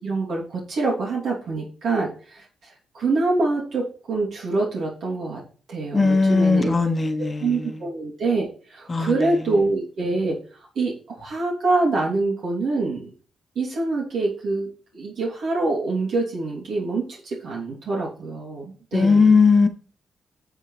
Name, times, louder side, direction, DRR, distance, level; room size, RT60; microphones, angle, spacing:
voice 1, 0.0-5.4 5.7-6.7 7.4-10.4 10.7-13.1 13.5-19.4, right 3 dB, 70° right, 3.1 m, -25 dB
voice 2, 5.9-7.8 8.9-9.5 18.9-19.7, left 4 dB, 25° left, 1.2 m, -19 dB
9.9 x 7.1 x 3.4 m
cardioid pair, 95°, 0 cm